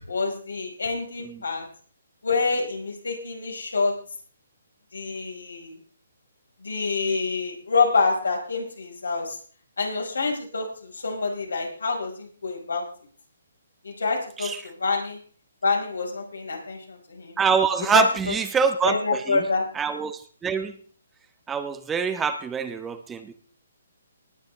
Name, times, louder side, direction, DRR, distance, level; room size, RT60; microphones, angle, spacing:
voice 1, 0.1-1.6 2.2-3.9 4.9-5.8 6.6-9.4 9.8-12.8 13.8-15.2 15.6-17.4 17.9-18.3 18.8-19.6, left 4 dB, 75° left, 1 dB, 5.0 m, -27 dB
voice 2, 17.4-19.4 19.7-20.7 21.5-23.3, right 5 dB, 10° right, 9 dB, 1.1 m, -25 dB
19.5 x 9.4 x 3.4 m, 0.43 s
figure-of-eight pair, 140°, 0 cm